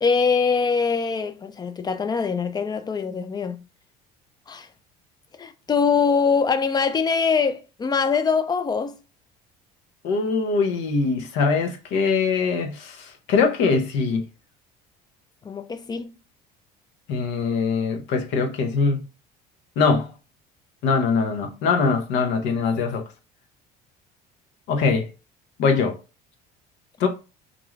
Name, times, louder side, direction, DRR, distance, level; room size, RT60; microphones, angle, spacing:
voice 1, 0.0-3.6 4.5-4.7 5.4-8.9 15.4-16.1, left 5 dB, 20° left, 0.4 m, -23 dB
voice 2, 10.0-14.2 17.1-19.0 19.8-20.1 20.8-23.0 24.7-25.1 25.6-26.0 27.0-27.1, left 4 dB, 70° left, 0.7 m, -22 dB
2.5 x 2.2 x 3.1 m
supercardioid pair, 95°, 19 cm